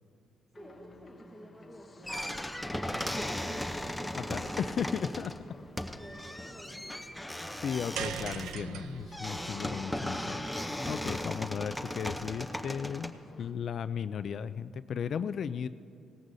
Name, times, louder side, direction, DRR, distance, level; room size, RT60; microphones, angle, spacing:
sound 1, 0.5-13.5, left 2 dB, 30° left, 0.9 m, -53 dB
voice 1, 0.6-2.8 3.1-3.6 4.0-4.5 6.0-6.9, right 1 dB, 15° right, -1 dB, 1.3 m, -52 dB
sound 2, 2.0-13.1, left 1 dB, 5° left, 0.7 m, -37 dB
voice 2, 4.2-5.6 7.6-10.4 10.9-15.7, left 7 dB, 60° left, 13 dB, 0.3 m, -35 dB
sound 3, 8.0-12.3, right 8 dB, 85° right, 0.5 m, -42 dB
18.5 x 14.0 x 2.7 m, 2.6 s
cardioid pair, 90°, 0 cm